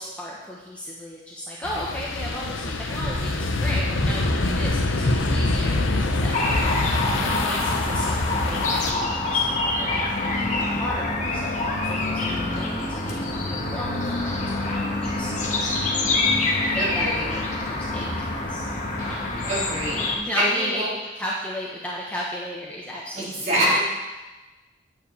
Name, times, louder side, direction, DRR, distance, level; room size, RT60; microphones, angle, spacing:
voice 1, 0.0-15.3 15.7-18.6 19.0-19.6 20.1-20.8 21.1-23.5, left 1 dB, 5° left, -5 dB, 1.1 m, -35 dB
sound 1, 1.6-8.9, left 2 dB, 90° left, 0.9 m, -25 dB
sound 2, 6.3-20.2, left 2 dB, 40° left, 1.3 m, -26 dB
voice 2, 16.8-17.3 19.0-19.2 19.5-20.9 23.1-23.8, right 1 dB, 40° right, -8 dB, 3.7 m, -26 dB
9.1 x 5.0 x 7.1 m, 1.1 s
head